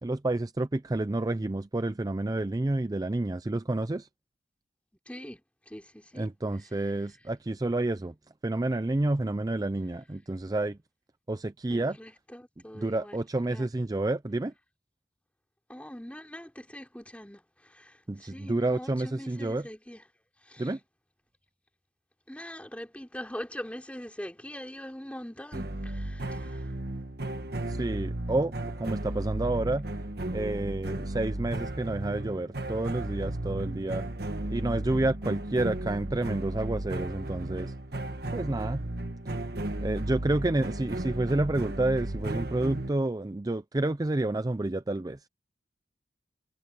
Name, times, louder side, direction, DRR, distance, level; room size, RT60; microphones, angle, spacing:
voice 1, 0.0-4.1 6.2-8.1 8.4-10.8 11.3-12.0 12.8-14.5 18.1-19.7 20.6-20.8 27.7-29.9 30.3-34.0 34.5-37.7 38.3-38.8 39.8-45.2, right 2 dB, 20° right, 0.4 m, -29 dB
voice 2, 5.1-6.3 11.7-13.2 13.5-13.7 15.7-20.0 20.4-20.7 22.3-26.7, equal, 5° left, 3.9 m, -43 dB
sound 1, 25.5-42.9, right 1 dB, 60° right, 1.5 m, -34 dB
head